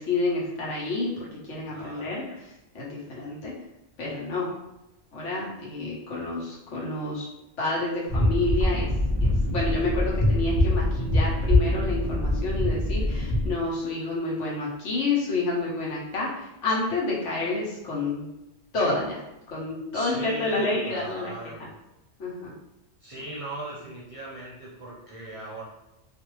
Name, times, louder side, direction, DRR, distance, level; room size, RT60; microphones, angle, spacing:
voice 1, 0.0-2.2 2.7-3.5 4.0-4.5 5.1-7.3 7.6-8.9 9.2-18.3 18.7-19.2 19.5-21.3 22.2-22.5, left 3 dB, 80° left, -5 dB, 1.3 m, -29 dB
voice 2, 1.7-2.1 19.9-21.8 23.0-25.6, right 1 dB, 40° right, -7 dB, 0.5 m, -38 dB
sound 1, 8.1-13.5, left 1 dB, 50° left, 1.1 m, -24 dB
2.5 x 2.4 x 3.0 m, 0.95 s
omnidirectional pair, 1.2 m